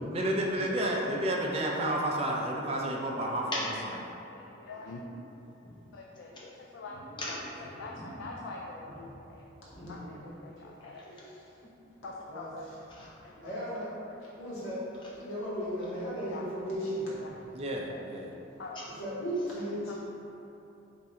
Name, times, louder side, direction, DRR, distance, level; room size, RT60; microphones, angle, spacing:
voice 1, 0.1-3.6 17.5-18.3, right 1 dB, 30° right, -1 dB, 0.4 m, -30 dB
voice 2, 4.6-5.0 5.9-7.0 7.3-7.4 7.8-8.9 9.9-10.5 10.8-11.0 12.0-12.6 13.2-13.3 14.1-14.2 16.3-16.4 17.9-18.0 18.6-18.8 19.9-20.0, left 3 dB, 65° left, -2 dB, 0.3 m, -44 dB
voice 3, 6.9-8.2 8.8-9.1 9.8-10.3 10.7-11.3 12.9-13.4 18.7-18.8, left 2 dB, 25° left, -6 dB, 0.6 m, -42 dB
voice 4, 9.7-10.3 11.1-11.5 12.3-12.9 13.4-13.9 14.4-14.8 15.1-17.4 18.9-19.9, equal, 90° left, -9 dB, 1.3 m, -36 dB
3.5 x 2.5 x 4.2 m, 3.0 s
head